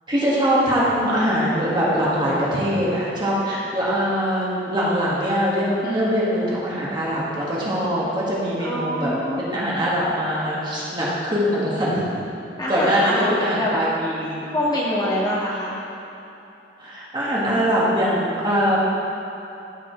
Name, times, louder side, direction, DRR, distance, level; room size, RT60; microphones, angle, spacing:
voice 1, 0.1-9.1 9.4-12.0 12.7-14.5 16.8-18.8, equal, 25° right, -8 dB, 1.8 m, -22 dB
voice 2, 5.8-6.3 8.6-9.5 12.6-13.7 14.5-15.8, equal, 25° left, -7 dB, 1.7 m, -25 dB
14.5 x 5.8 x 3.2 m, 2.9 s
head